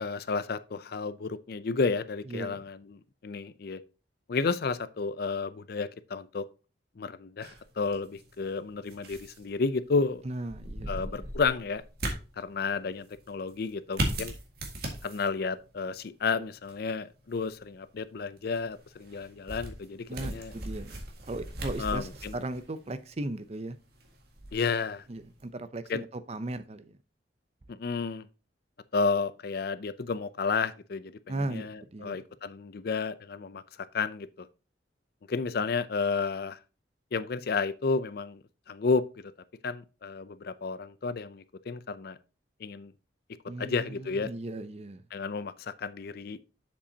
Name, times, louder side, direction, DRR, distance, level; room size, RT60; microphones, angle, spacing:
voice 1, 0.0-3.8 4.3-6.4 7.0-7.5 7.8-10.2 10.9-11.8 12.4-14.3 15.0-20.5 21.8-22.4 24.5-25.0 25.9-26.0 27.7-28.3 28.9-34.5 35.3-36.6 37.1-39.3 39.6-42.2 42.6-42.9 43.6-44.3 45.1-46.4, left 4 dB, 60° left, 0.5 m, -32 dB
voice 2, 2.3-2.6 10.2-11.3 20.1-21.0 21.3-23.8 25.1-27.0 31.3-32.2 43.5-45.0, right 2 dB, 35° right, 0.6 m, -37 dB
sound 1, 7.4-25.5, right 1 dB, 60° right, 1.8 m, -40 dB
7.4 x 7.0 x 2.8 m
head